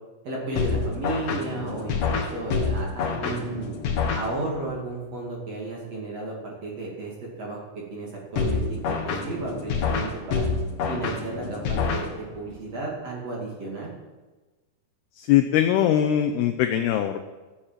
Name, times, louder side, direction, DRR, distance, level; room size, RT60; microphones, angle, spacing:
voice 1, 0.2-3.7 4.1-7.1 7.4-10.4 10.9-13.9, right 2 dB, 40° right, -3 dB, 3.0 m, -33 dB
sound 1, 0.6-4.8 8.4-12.6, left 5 dB, 55° left, 3.0 m, -28 dB
voice 2, 15.2-17.2, left 11 dB, 80° left, 7 dB, 2.3 m, -21 dB
14.5 x 8.4 x 7.5 m, 1.2 s
omnidirectional pair, 5.5 m